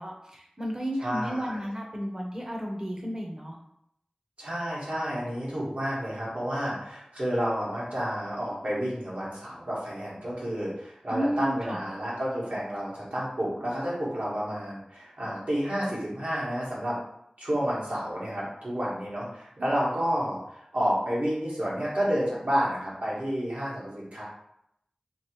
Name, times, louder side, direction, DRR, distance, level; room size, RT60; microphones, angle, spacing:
voice 1, 0.0-3.5 11.1-11.8, equal, 25° right, 0 dB, 0.7 m, -32 dB
voice 2, 1.0-1.6 4.4-17.0 17.4-20.4 20.7-24.2, equal, 75° right, -7 dB, 1.4 m, -30 dB
3.0 x 2.9 x 2.9 m, 0.76 s
wide cardioid pair, 40°, 2 cm